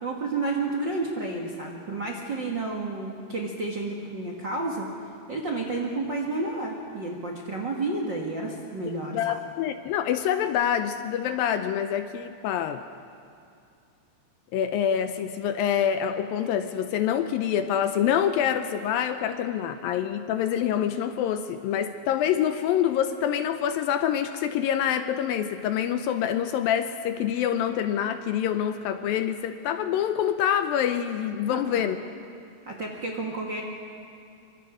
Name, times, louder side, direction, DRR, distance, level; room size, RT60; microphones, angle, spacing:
voice 1, 0.0-4.9 5.3-9.4 31.5-31.8 32.6-33.6, right 3 dB, 45° right, 0 dB, 1.5 m, -31 dB
voice 2, 9.1-12.9 14.5-32.0, left 9 dB, 80° left, 9 dB, 2.3 m, -26 dB
26.0 x 24.5 x 5.0 m, 2.4 s
omnidirectional pair, 4.5 m